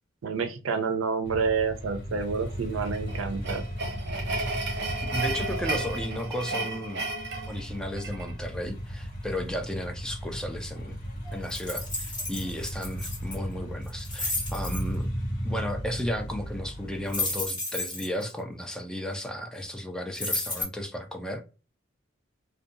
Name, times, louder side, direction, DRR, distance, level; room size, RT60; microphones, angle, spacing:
voice 1, 0.2-3.6, right 5 dB, 85° right, 0.4 m, -29 dB
sound 1, 1.2-17.5, equal, 45° left, 1.2 m, -36 dB
sound 2, 2.8-8.3, right 2 dB, 60° right, 0.7 m, -33 dB
voice 2, 5.1-7.0 7.5-11.0 11.3-15.1 15.4-21.4, equal, 5° left, 0.4 m, -34 dB
sound 3, 11.5-13.3 13.9-14.8 17.1-18.2 20.1-20.6, left 2 dB, 25° left, 1.3 m, -32 dB
2.7 x 2.2 x 2.4 m
head